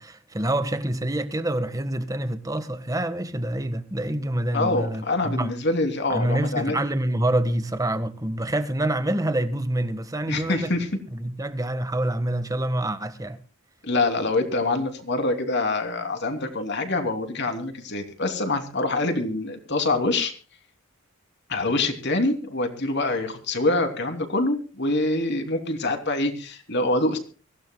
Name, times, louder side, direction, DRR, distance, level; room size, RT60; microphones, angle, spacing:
voice 1, 0.0-5.5 6.1-10.7 11.1-13.4, right 1 dB, 15° right, 1.5 m, -26 dB
voice 2, 4.5-6.8 10.3-10.9 13.8-20.3 21.5-27.2, left 2 dB, 55° left, 3.1 m, -25 dB
24.5 x 16.5 x 2.3 m
head